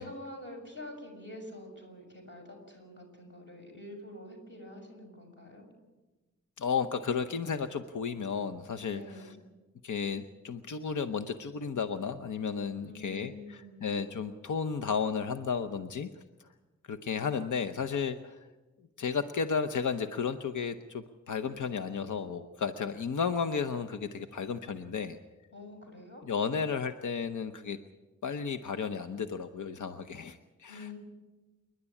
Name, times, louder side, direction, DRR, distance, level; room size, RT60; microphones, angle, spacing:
voice 1, 0.0-5.6 8.9-9.4 12.7-13.8 25.5-26.2 30.7-31.0, left 1 dB, 40° left, 2 dB, 6.5 m, -46 dB
voice 2, 6.6-9.3 9.8-16.1 16.9-18.5 19.0-25.2 26.3-27.8 28.2-31.0, left 6 dB, 85° left, 9 dB, 0.9 m, -33 dB
28.5 x 11.0 x 10.0 m, 1.2 s
wide cardioid pair, 150°, 29 cm